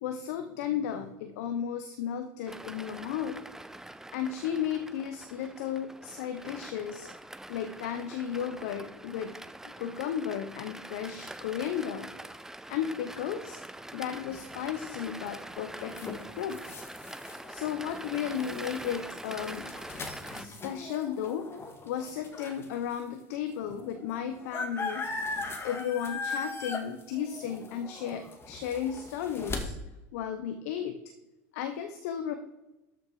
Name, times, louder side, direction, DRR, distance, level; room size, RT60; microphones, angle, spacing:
voice 1, 0.0-3.4 4.1-7.1 7.5-9.4 9.8-12.1 12.7-13.6 13.9-16.8 17.5-19.7 20.3-21.5 21.8-25.1 25.6-29.7 30.1-31.0 31.5-32.3, left 9 dB, 75° left, 7 dB, 1.0 m, -34 dB
sound 1, 2.5-20.5, right 1 dB, 5° right, 0.6 m, -44 dB
sound 2, 14.3-22.8 23.3-23.4 23.6-29.6, left 3 dB, 30° left, 2.0 m, -39 dB
13.0 x 6.4 x 4.9 m, 1.0 s
hypercardioid pair, 85°, 8 cm